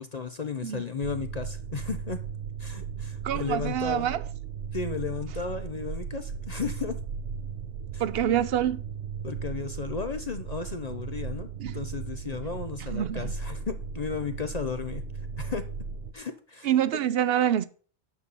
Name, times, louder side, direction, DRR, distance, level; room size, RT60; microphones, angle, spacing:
voice 1, 0.0-2.2 2.6-4.1 4.7-7.0 7.9-8.0 9.2-15.0 15.4-15.6 16.1-16.7, left 5 dB, 45° left, 0.6 m, -34 dB
sound 1, 1.0-16.1, right 6 dB, 85° right, 1.1 m, -36 dB
voice 2, 3.2-4.2 8.0-8.8 11.6-11.8 12.9-13.3 16.6-17.7, right 10 dB, 65° right, 0.8 m, -26 dB
9.6 x 4.1 x 6.8 m
omnidirectional pair, 1.2 m